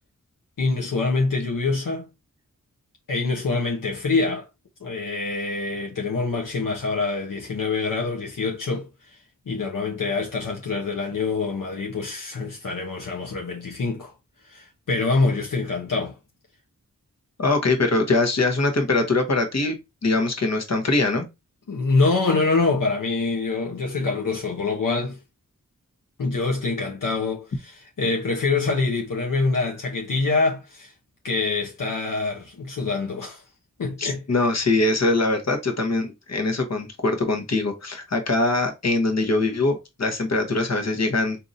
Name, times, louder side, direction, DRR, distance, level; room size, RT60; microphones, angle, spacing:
voice 1, 0.6-2.1 3.1-4.5 4.8-9.2 9.5-14.1 14.4-16.2 21.7-25.2 26.2-30.9 31.2-33.4 33.8-34.2, left 3 dB, 75° left, 0.8 m, -25 dB
voice 2, 17.4-19.8 20.0-21.3 34.0-41.4, left 2 dB, 50° left, 1.0 m, -22 dB
3.9 x 2.7 x 2.5 m
cardioid pair, 45°, 33 cm